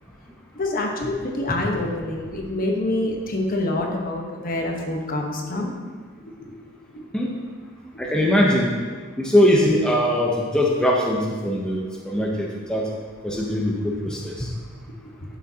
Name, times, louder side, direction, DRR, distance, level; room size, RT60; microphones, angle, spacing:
voice 1, 0.5-5.7, left 1 dB, 45° left, 0 dB, 1.1 m, -26 dB
voice 2, 8.0-8.8 9.2-12.9 13.2-14.5, left 1 dB, 5° left, -2 dB, 0.7 m, -21 dB
11.5 x 6.1 x 2.8 m, 1.5 s
head